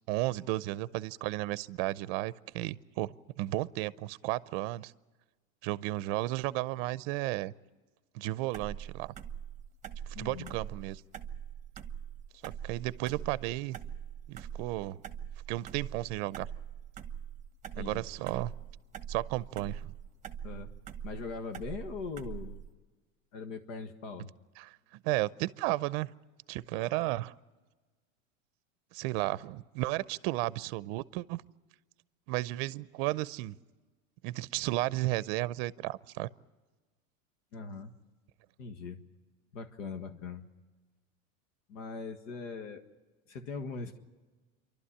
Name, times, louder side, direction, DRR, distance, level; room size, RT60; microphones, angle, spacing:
voice 1, 0.1-4.9 5.6-7.5 8.1-9.1 10.2-11.0 12.4-13.8 14.3-15.0 15.5-16.5 17.8-18.5 19.1-19.9 24.6-24.7 25.0-26.1 26.5-27.4 28.9-31.4 32.3-33.6 34.2-36.3, right 18 dB, 50° right, 19 dB, 0.6 m, -33 dB
sound 1, 8.5-22.7, right 9 dB, 20° right, 1.0 m, -43 dB
voice 2, 10.1-10.6 17.7-18.0 20.4-20.7 21.0-22.6 23.3-24.3 37.5-37.9 38.6-39.0 39.5-40.5 41.7-42.8 43.3-44.0, left 4 dB, 75° left, 6 dB, 1.7 m, -40 dB
27.5 x 12.0 x 9.9 m, 1.3 s
supercardioid pair, 140°, 40 cm